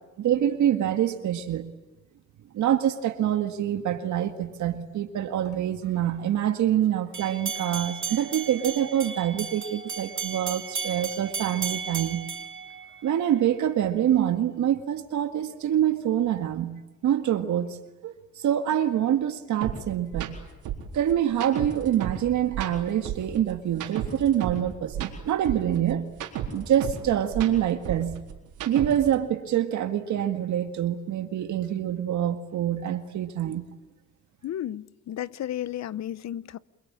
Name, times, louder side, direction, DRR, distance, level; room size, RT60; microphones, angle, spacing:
voice 1, 0.2-1.7 2.5-12.3 13.0-17.8 18.0-18.1 18.4-20.3 20.9-26.1 26.5-28.2 28.7-33.7, right 10 dB, 75° right, 1.9 m, -25 dB
sound 1, 7.1-13.4, right 6 dB, 40° right, 3.4 m, -35 dB
sound 2, 19.6-19.7 20.1-20.3 20.6-22.2 22.5-24.6 24.9-27.0 27.3-29.1, right 10 dB, 90° right, 4.2 m, -33 dB
voice 2, 34.4-36.6, left 11 dB, 65° left, 0.9 m, -33 dB
28.5 x 22.5 x 8.8 m
cardioid pair, 90°, 30 cm